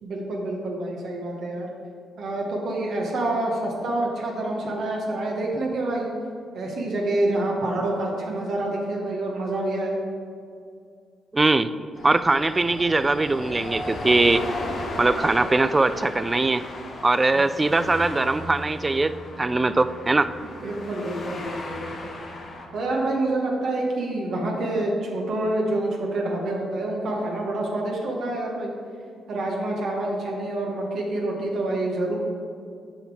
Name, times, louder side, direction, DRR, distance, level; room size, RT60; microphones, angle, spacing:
voice 1, 0.0-1.7 2.2-6.1 6.5-10.0 17.3-17.5 20.6-22.1 22.7-28.7 29.3-32.2, right 2 dB, 70° right, -1 dB, 1.2 m, -27 dB
voice 2, 11.3-11.7 12.0-14.4 15.0-16.6 17.0-20.3, right 2 dB, 25° right, 14 dB, 0.3 m, -21 dB
sound 1, 11.9-22.7, left 1 dB, 55° left, 1.3 m, -36 dB
7.0 x 5.1 x 4.8 m, 2.3 s
supercardioid pair, 55°, 0 cm